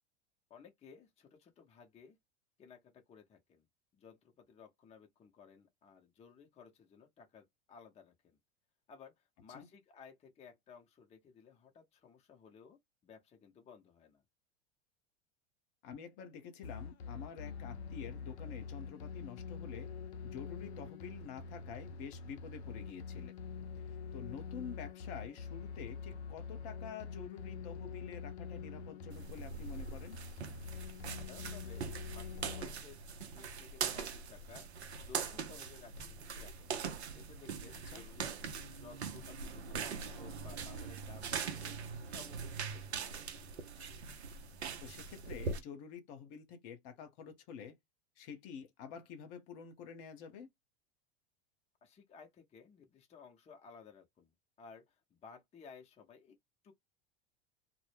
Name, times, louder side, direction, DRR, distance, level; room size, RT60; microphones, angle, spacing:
voice 1, 0.5-2.2 2.6-3.6 3.9-8.4 8.9-14.2 31.2-33.0 33.3-34.7 35.0-36.7 37.1-38.3 38.6-41.8 42.0-43.5 51.8-54.3 54.6-56.3 56.6-56.7, left 6 dB, 20° left, 0.6 m, -57 dB
voice 2, 15.8-19.9 20.2-23.4 23.9-30.2 37.9-38.0 44.8-47.7 48.2-50.5, left 7 dB, 55° left, 0.8 m, -48 dB
sound 1, 16.6-32.6, left 5 dB, 85° left, 0.5 m, -45 dB
sound 2, 29.1-45.6, right 5 dB, 90° right, 0.5 m, -42 dB
2.0 x 2.0 x 3.2 m
hypercardioid pair, 90°, 32 cm